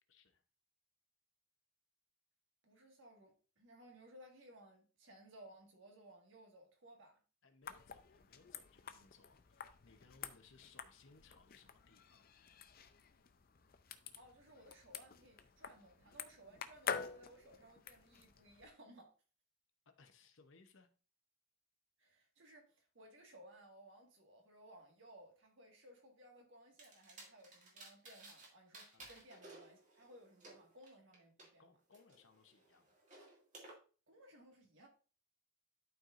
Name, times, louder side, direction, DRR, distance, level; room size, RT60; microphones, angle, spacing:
voice 1, 0.1-0.4 7.4-12.3 16.4-16.6 19.9-20.9 28.9-29.1 31.6-32.9, left 4 dB, 60° left, 0.8 m, -66 dB
voice 2, 2.6-7.2 14.2-19.1 22.0-31.7 34.1-34.9, right 1 dB, 60° right, 1.8 m, -60 dB
sound 1, 7.6-18.7, left 7 dB, 45° left, 0.5 m, -49 dB
disc from case to cd player and press play, 26.8-28.5 28.7-31.5 31.9-33.7, right 2 dB, 35° right, 2.0 m, -57 dB
12.0 x 4.6 x 2.5 m
head